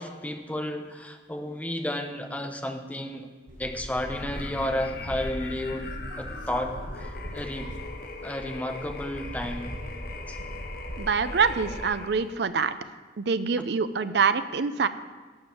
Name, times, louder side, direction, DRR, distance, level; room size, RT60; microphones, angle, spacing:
voice 1, 0.0-3.3 3.6-6.7 7.3-7.7 8.2-9.8 10.3-10.4, left 1 dB, 10° left, 5 dB, 0.8 m, -32 dB
sound 1, 3.5-11.9, equal, 45° right, 1.1 m, -39 dB
sound 2, 4.1-12.4, left 3 dB, 50° left, 0.9 m, -41 dB
voice 2, 11.0-12.7 13.2-14.9, right 5 dB, 65° right, 12 dB, 0.5 m, -25 dB
11.5 x 5.2 x 8.4 m, 1.3 s
head